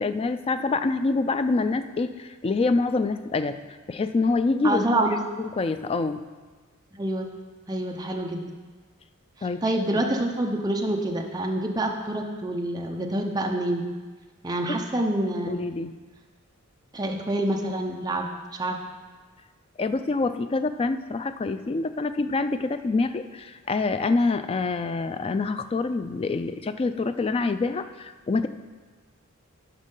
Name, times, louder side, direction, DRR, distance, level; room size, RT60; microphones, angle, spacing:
voice 1, 0.0-3.6 3.9-4.9 5.4-6.2 9.4-9.6 14.7-14.8 15.5-15.9 19.8-28.5, left 3 dB, 25° left, 10 dB, 0.3 m, -26 dB
voice 2, 4.6-5.1 6.9-7.3 7.7-8.4 9.4-13.8 14.4-15.7 16.9-18.8, right 1 dB, 20° right, 1 dB, 0.6 m, -27 dB
11.5 x 5.3 x 3.8 m, 1.4 s
head